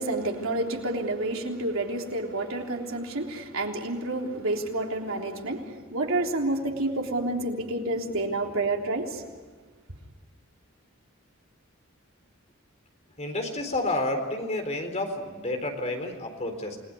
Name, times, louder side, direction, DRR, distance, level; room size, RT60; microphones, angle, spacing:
voice 1, 0.0-9.3, right 2 dB, 80° right, 1 dB, 3.5 m, -29 dB
voice 2, 13.2-16.8, left 2 dB, 35° left, 4 dB, 4.0 m, -30 dB
28.5 x 20.0 x 9.6 m, 1.5 s
head